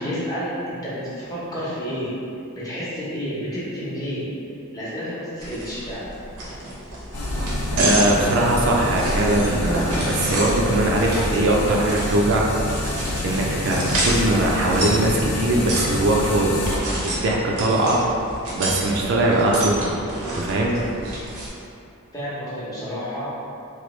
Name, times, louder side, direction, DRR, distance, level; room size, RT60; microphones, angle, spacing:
voice 1, 0.0-2.1 2.5-4.3 4.7-6.1 8.3-8.6 22.1-23.3, equal, 15° left, -9 dB, 0.7 m, -30 dB
sound 1, 5.4-21.5, right 1 dB, 85° right, 0.7 m, -30 dB
sound 2, 7.1-16.8, left 1 dB, 85° left, 0.5 m, -28 dB
voice 2, 7.7-12.5 13.2-16.7 17.0-18.2 18.6-20.0 20.3-20.8, right 1 dB, 55° right, -2 dB, 0.4 m, -21 dB
3.1 x 2.3 x 3.0 m, 2.6 s
head